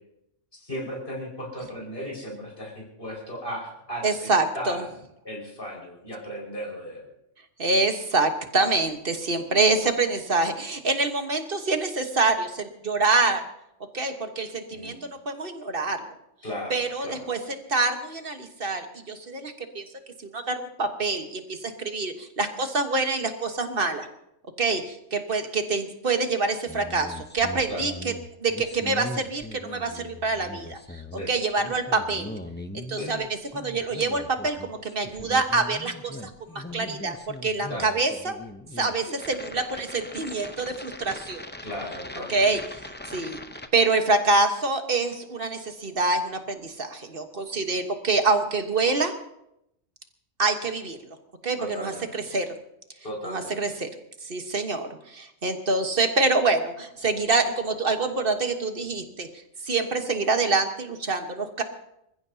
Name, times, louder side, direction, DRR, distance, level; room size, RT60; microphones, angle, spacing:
voice 1, 0.6-4.9 5.2-7.1 14.7-15.0 16.4-17.3 27.7-27.8 31.2-31.3 33.0-33.1 37.7-38.0 41.6-42.5 51.6-52.2 53.0-53.6, equal, 50° left, -2 dB, 5.6 m, -36 dB
voice 2, 4.0-4.8 7.6-13.4 13.9-16.1 16.7-17.4 17.7-19.8 20.3-24.1 24.6-27.9 28.4-31.0 31.3-32.4 32.7-33.3 33.5-36.3 36.5-38.4 38.8-41.4 42.3-42.6 43.1-43.4 43.7-49.1 50.4-51.0 51.4-52.5 53.2-53.9 54.2-59.3 59.6-61.6, right 3 dB, 50° right, 6 dB, 1.5 m, -26 dB
sound 1, 26.7-43.7, left 1 dB, 10° left, 0.6 m, -40 dB
26.5 x 15.0 x 2.8 m, 0.80 s
omnidirectional pair, 1.2 m